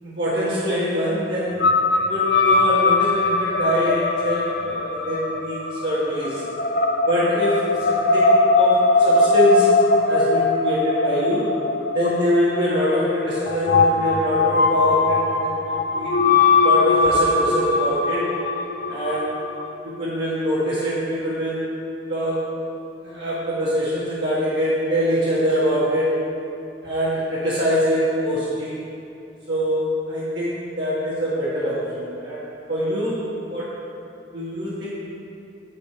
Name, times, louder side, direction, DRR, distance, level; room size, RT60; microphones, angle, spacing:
voice 1, 0.0-6.4 7.1-9.8 10.1-11.5 11.9-16.2 16.6-18.3 18.9-19.4 19.8-21.7 22.1-22.6 23.0-26.2 26.8-28.8 29.5-33.7 34.3-34.9, equal, 70° right, -11 dB, 1.8 m, -24 dB
sound 1, 1.6-19.7, left 3 dB, 60° left, 0.6 m, -20 dB
11.0 x 5.0 x 5.0 m, 2.6 s
head